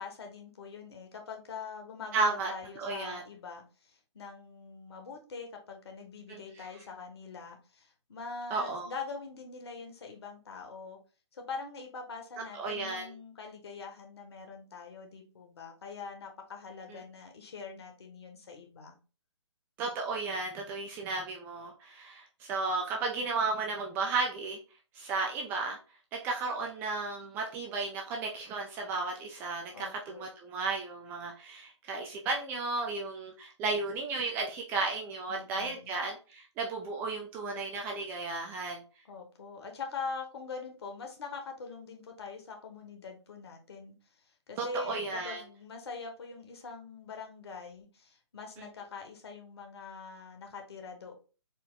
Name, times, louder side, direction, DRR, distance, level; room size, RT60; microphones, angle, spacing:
voice 1, 0.0-11.0 11.3-18.9 29.7-30.3 35.3-35.9 39.1-43.9 44.5-51.2, left 4 dB, 60° left, 4 dB, 1.2 m, -43 dB
voice 2, 2.1-2.5 2.8-3.2 6.3-6.7 8.5-8.9 12.5-13.1 16.9-17.0 19.8-24.6 24.9-25.8 26.1-38.8 44.6-45.4 48.6-48.7, right 3 dB, 15° right, 1 dB, 0.4 m, -34 dB
4.3 x 2.1 x 3.7 m, 0.34 s
hypercardioid pair, 145°, 15 cm